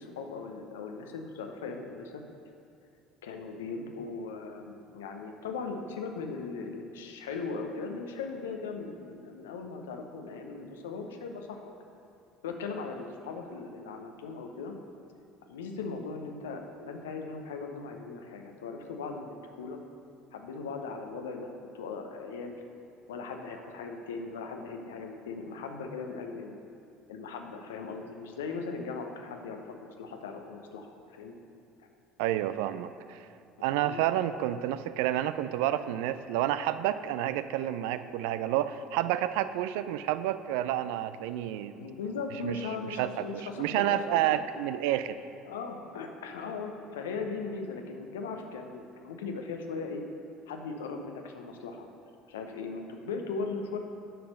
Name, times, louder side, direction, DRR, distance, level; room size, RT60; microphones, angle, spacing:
voice 1, 0.0-2.2 3.2-11.7 12.4-14.8 15.5-19.8 20.3-22.6 23.1-26.6 27.1-31.4 33.8-34.0 41.8-44.4 45.5-50.0 50.5-51.9 52.3-53.8, left 4 dB, 80° left, 4 dB, 0.7 m, -38 dB
voice 2, 32.2-33.2 33.6-41.9 42.4-45.2, right 12 dB, 70° right, 13 dB, 0.3 m, -30 dB
6.7 x 6.0 x 6.3 m, 2.5 s
hypercardioid pair, 65°, 0 cm